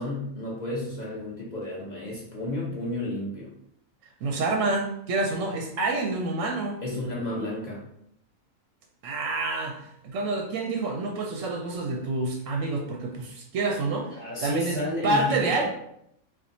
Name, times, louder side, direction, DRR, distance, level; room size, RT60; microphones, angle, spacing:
voice 1, 0.0-3.5 6.8-7.8 14.1-15.6, left 1 dB, 35° left, -5 dB, 0.8 m, -32 dB
voice 2, 4.2-6.8 9.0-14.1 14.4-14.8 15.0-15.6, right 3 dB, 70° right, 2 dB, 0.9 m, -28 dB
4.3 x 2.4 x 2.6 m, 0.74 s
omnidirectional pair, 1.5 m